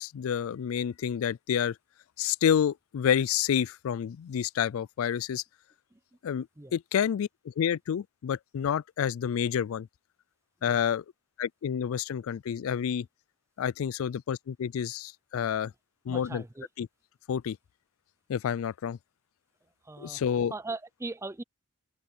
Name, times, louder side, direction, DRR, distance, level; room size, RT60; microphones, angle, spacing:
voice 1, 0.0-1.8 2.2-5.4 6.2-9.9 10.6-11.0 11.4-13.1 13.6-15.7 16.1-16.4 16.8-16.9 17.3-17.6 18.3-19.0 20.0-20.5, left 8 dB, 75° left, 0.3 m, -29 dB
voice 2, 16.1-16.7 19.8-20.2 20.5-21.4, right 2 dB, 15° right, 0.5 m, -39 dB
head